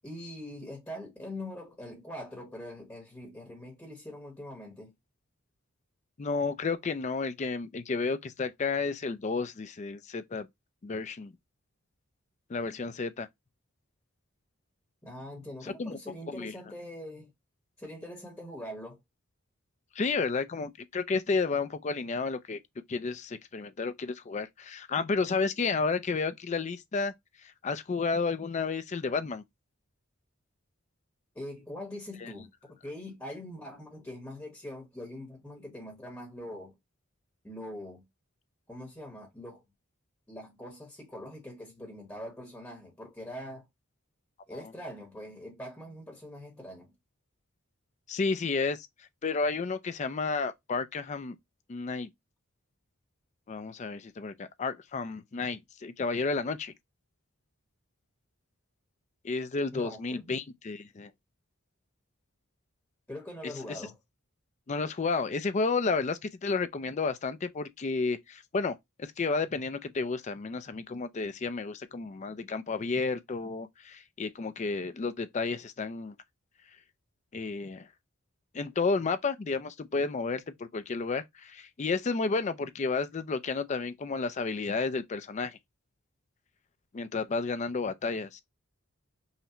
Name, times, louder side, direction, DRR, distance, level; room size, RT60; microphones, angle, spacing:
voice 1, 0.0-4.9 15.0-17.3 17.8-19.0 31.3-32.5 32.8-36.7 37.4-38.0 38.7-39.6 40.3-43.7 44.5-46.9 59.7-60.3 63.1-64.0, left 1 dB, 10° left, 1.0 m, -43 dB
voice 2, 6.2-10.5 10.8-11.3 12.5-13.3 15.6-16.0 16.3-16.5 20.0-22.6 22.9-27.1 27.6-29.4 32.2-32.3 44.5-44.6 48.1-48.9 49.2-51.4 51.7-52.1 53.5-56.7 59.2-61.1 63.4-63.8 64.7-76.1 77.3-77.9 78.5-85.6 86.9-88.4, left 4 dB, 35° left, 0.4 m, -31 dB
5.6 x 2.1 x 2.8 m
head